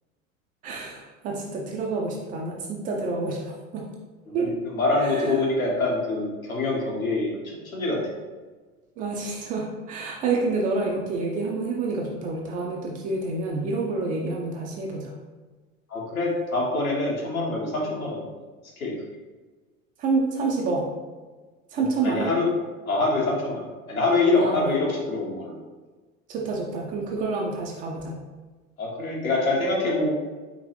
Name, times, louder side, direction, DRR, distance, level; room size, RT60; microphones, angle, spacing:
voice 1, 0.6-3.9 4.3-4.5 5.0-5.3 9.0-15.1 20.0-20.9 21.7-22.3 24.4-24.8 26.3-28.2, right 3 dB, 20° right, -1 dB, 0.4 m, -28 dB
voice 2, 4.4-7.3 7.7-8.0 15.9-18.3 18.8-18.9 22.0-22.4 22.9-23.6 23.9-25.5 28.8-30.1, left 2 dB, 75° left, -4 dB, 1.4 m, -25 dB
5.0 x 3.2 x 3.1 m, 1.3 s
figure-of-eight pair, 80°, 42 cm